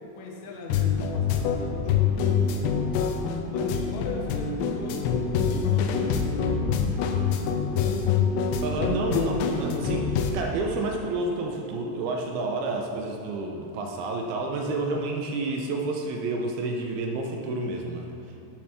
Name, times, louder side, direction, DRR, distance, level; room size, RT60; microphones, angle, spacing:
voice 1, 0.0-3.1 3.5-8.2, left 2 dB, 65° left, -2 dB, 1.8 m, -41 dB
sound 1, 0.7-10.3, left 6 dB, 90° left, 2.9 m, -25 dB
voice 2, 8.6-18.1, right 2 dB, 80° right, 2 dB, 2.4 m, -30 dB
9.5 x 6.9 x 5.7 m, 3.0 s
omnidirectional pair, 5.0 m